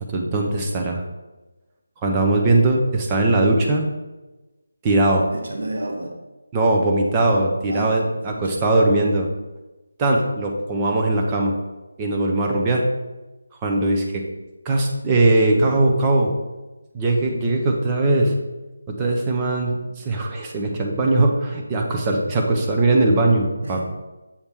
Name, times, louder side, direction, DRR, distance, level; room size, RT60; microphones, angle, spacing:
voice 1, 0.1-1.0 2.0-3.9 4.8-5.3 6.5-9.3 10.0-11.6 12.0-12.9 13.6-14.3 14.7-16.3 16.9-18.3 18.9-23.8, right 2 dB, 10° right, 1 dB, 0.4 m, -20 dB
voice 2, 5.3-6.1 7.7-8.5 23.6-23.8, right 1 dB, 55° right, 2 dB, 1.1 m, -31 dB
7.0 x 3.4 x 4.3 m, 1.1 s
figure-of-eight pair, 175°, 0 cm